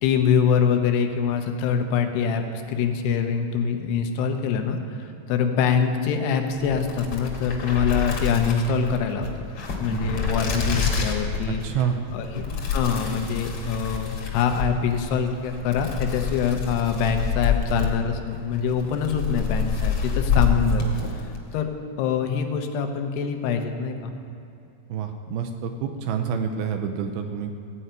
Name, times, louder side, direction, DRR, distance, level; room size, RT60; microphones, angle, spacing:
voice 1, 0.0-9.3 9.8-11.6 12.1-12.4 12.7-21.2 21.5-21.7 22.0-24.1, left 6 dB, 85° left, 5 dB, 3.0 m, -24 dB
sound 1, 6.5-21.5, left 5 dB, 50° left, 2.0 m, -28 dB
voice 2, 9.9-10.2 11.5-12.0 24.9-27.5, right 7 dB, 80° right, 6 dB, 2.4 m, -28 dB
15.5 x 5.6 x 9.0 m, 2.6 s
omnidirectional pair, 4.7 m